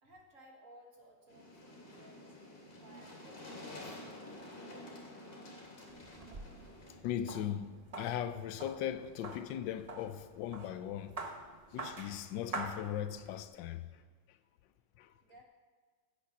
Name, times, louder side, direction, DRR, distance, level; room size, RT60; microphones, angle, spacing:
voice 1, 0.0-2.4 2.8-5.0 15.2-15.4, right 1 dB, 40° right, 1.8 m, -59 dB
sound 1, 1.3-6.9, left 1 dB, 50° left, 3.0 m, -50 dB
sound 2, 5.9-13.4, right 3 dB, 85° right, 0.3 m, -46 dB
voice 2, 7.0-11.2 11.7-14.0 14.3-14.4 15.0-15.1, left 10 dB, 75° left, 1.2 m, -39 dB
10.0 x 8.6 x 5.8 m
omnidirectional pair, 2.2 m